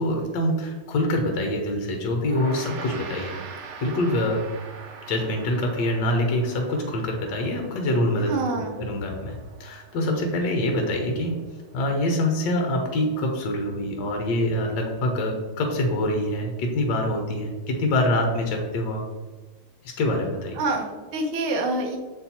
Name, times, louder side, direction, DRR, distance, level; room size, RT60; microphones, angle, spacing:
voice 1, 0.0-3.4 3.8-4.4 5.1-11.4 11.7-19.0 19.8-20.6, left 1 dB, 65° left, 2 dB, 1.6 m, -25 dB
Gong, 2.2-11.8, right 5 dB, 60° right, 1.3 m, -43 dB
voice 2, 8.2-8.8 20.6-22.0, right 2 dB, 85° right, 2 dB, 1.9 m, -27 dB
7.4 x 4.3 x 4.2 m, 1.4 s
omnidirectional pair, 2.3 m